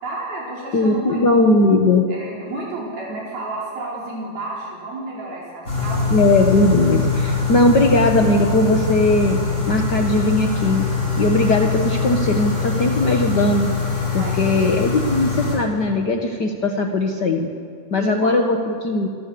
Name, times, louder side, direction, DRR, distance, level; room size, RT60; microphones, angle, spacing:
voice 1, 0.0-1.5 2.1-6.1 14.1-14.7 18.0-18.3, right 2 dB, 75° right, -5 dB, 6.1 m, -31 dB
voice 2, 0.7-2.1 6.1-9.4 9.7-10.9 11.2-13.7 14.1-17.5 17.9-19.1, left 2 dB, 55° left, 2 dB, 1.2 m, -18 dB
sound 1, 5.7-15.6, left 4 dB, 20° left, 8.1 m, -23 dB
29.5 x 26.5 x 7.1 m, 2.3 s
omnidirectional pair, 4.3 m